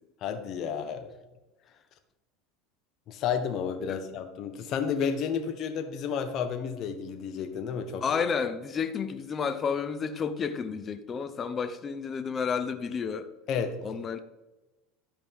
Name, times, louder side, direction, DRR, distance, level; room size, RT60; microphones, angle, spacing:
voice 1, 0.2-1.1 3.1-8.2 13.5-13.8, left 7 dB, 50° left, 7 dB, 1.2 m, -31 dB
voice 2, 8.0-13.3 13.8-14.2, left 6 dB, 30° left, 10 dB, 0.7 m, -31 dB
12.5 x 5.0 x 3.6 m, 1.1 s
supercardioid pair, 115°, 0 cm